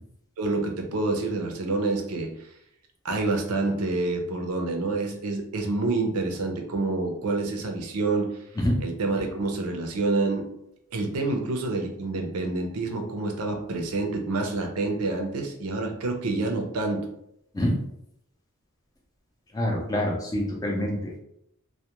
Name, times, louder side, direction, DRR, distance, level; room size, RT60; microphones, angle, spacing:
voice 1, 0.4-2.3 3.0-8.3 8.8-10.5 10.9-17.1, right 3 dB, 85° right, 3 dB, 0.5 m, -27 dB
voice 2, 19.5-21.2, left 1 dB, 15° left, -1 dB, 0.4 m, -26 dB
2.2 x 2.1 x 2.8 m, 0.76 s
head